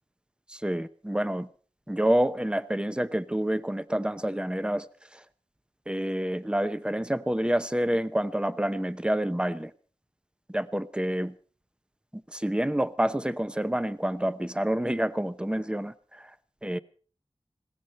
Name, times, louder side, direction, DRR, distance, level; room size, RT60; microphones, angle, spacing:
voice 1, 0.5-1.5 1.9-4.9 5.1-5.2 5.9-9.7 10.5-11.3 12.1-16.3 16.6-16.8, right 1 dB, 10° right, 14 dB, 0.8 m, -28 dB
20.0 x 17.0 x 4.2 m, 0.41 s
wide cardioid pair, 60°, 11 cm